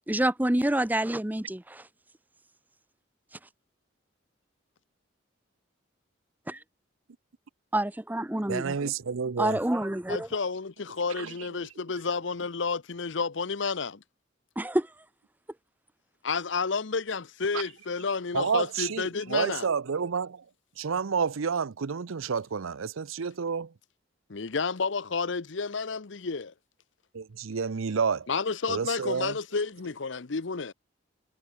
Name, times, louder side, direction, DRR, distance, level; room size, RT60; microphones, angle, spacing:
voice 1, 0.1-1.9 6.5-6.6 7.7-8.9 9.4-10.3 14.6-14.9, right 1 dB, 10° right, 0.6 m, -27 dB
voice 2, 8.5-9.6 11.2-11.5 17.5-17.6 18.3-20.4 20.8-23.7 27.1-28.3 28.7-29.4, right 6 dB, 90° right, 0.6 m, -30 dB
voice 3, 10.1-14.0 16.2-19.7 24.3-26.5 28.3-30.7, left 4 dB, 65° left, 0.8 m, -31 dB
head